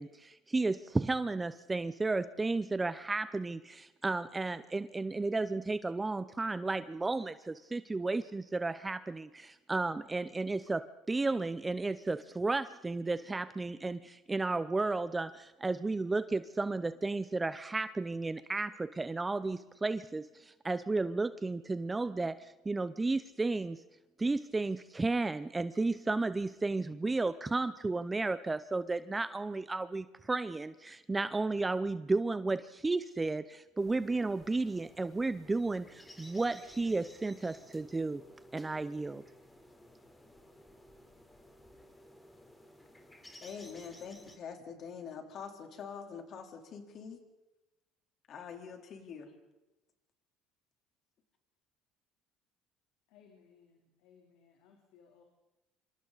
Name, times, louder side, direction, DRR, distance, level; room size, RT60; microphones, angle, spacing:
voice 1, 0.0-23.8 24.2-38.2 38.5-39.2, right 3 dB, 15° right, 0.7 m, -33 dB
sound 1, 33.8-44.4, left 1 dB, 10° left, 3.7 m, -56 dB
voice 2, 43.4-47.2 48.3-49.3, left 6 dB, 50° left, 3.6 m, -45 dB
voice 3, 53.1-55.2, left 7 dB, 80° left, 3.4 m, -63 dB
26.5 x 26.0 x 4.1 m
cardioid pair, 115°, 0 cm